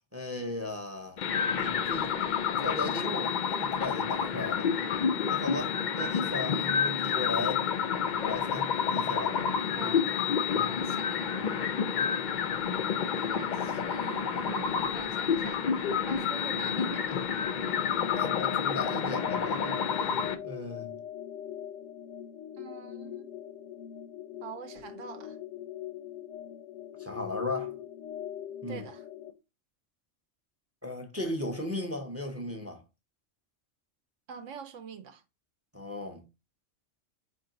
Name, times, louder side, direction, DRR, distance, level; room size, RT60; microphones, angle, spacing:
voice 1, 0.1-2.1 2.6-4.7 5.3-7.7 8.2-10.1 10.5-10.7 18.1-20.9 27.0-27.7 28.6-28.8 30.8-32.8 35.7-36.2, left 2 dB, 15° right, 0.5 m, -37 dB
sound 1, 1.2-20.3, left 7 dB, 60° left, 0.5 m, -29 dB
voice 2, 9.7-10.1 10.6-11.4 13.1-15.6 16.1-17.3 22.6-23.3 24.4-25.4 28.7-29.1 34.3-35.2, right 7 dB, 80° right, 1.0 m, -45 dB
sound 2, 17.4-29.3, left 11 dB, 85° left, 1.0 m, -41 dB
4.4 x 2.6 x 3.8 m
omnidirectional pair, 1.3 m